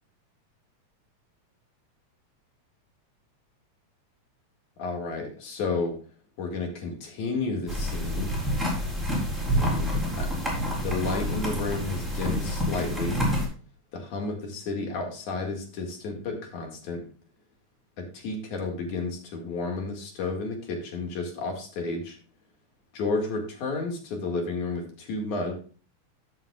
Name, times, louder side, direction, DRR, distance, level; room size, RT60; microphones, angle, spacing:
voice 1, 4.8-6.0 6.4-8.3 9.6-10.3 10.8-13.2 13.9-17.0 18.0-22.2 22.9-25.5, left 3 dB, 75° left, 2 dB, 3.4 m, -32 dB
sound 1, 7.7-13.5, equal, ahead, 3.6 m, -28 dB
13.5 x 7.3 x 2.4 m, 0.39 s
omnidirectional pair, 3.4 m